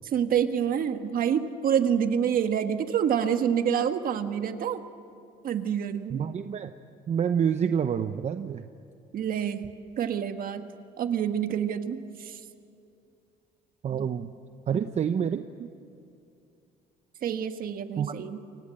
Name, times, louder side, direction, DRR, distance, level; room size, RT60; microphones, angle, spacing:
voice 1, 0.0-4.8 5.4-6.2 9.1-10.7 11.0-12.4 17.2-18.4, right 8 dB, 60° right, 8 dB, 1.7 m, -27 dB
voice 2, 6.1-6.7 7.1-8.6 13.8-14.3 14.7-15.4 18.0-18.1, right 8 dB, 40° right, 9 dB, 0.8 m, -27 dB
29.0 x 24.5 x 7.9 m, 2.6 s
cardioid pair, 110°, 17 cm